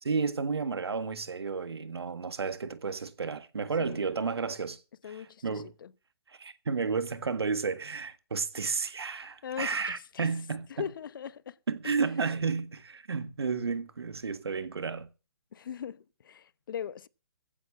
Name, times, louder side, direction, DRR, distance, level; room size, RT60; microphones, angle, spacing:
voice 1, 0.0-4.8 5.1-5.7 6.3-10.9 11.7-15.1, right 5 dB, 80° right, 1.7 m, -32 dB
voice 2, 5.0-5.9 9.4-10.3 10.8-11.5 11.8-12.0 15.5-17.1, left 8 dB, 55° left, 0.9 m, -40 dB
15.5 x 8.0 x 7.1 m
hypercardioid pair, 145°, 13 cm